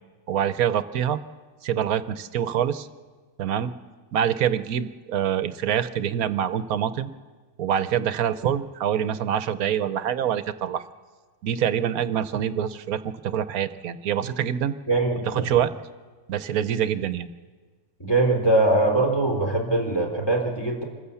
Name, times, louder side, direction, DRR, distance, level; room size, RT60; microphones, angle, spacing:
voice 1, 0.3-1.2 1.6-2.9 3.4-3.7 4.1-7.1 7.6-10.8 11.4-14.8 15.3-15.7 16.3-17.3, right 9 dB, 70° right, 13 dB, 1.2 m, -25 dB
voice 2, 14.9-15.5 18.0-20.8, right 2 dB, 15° left, 0 dB, 3.4 m, -22 dB
25.5 x 15.5 x 7.0 m, 1.4 s
omnidirectional pair, 1.7 m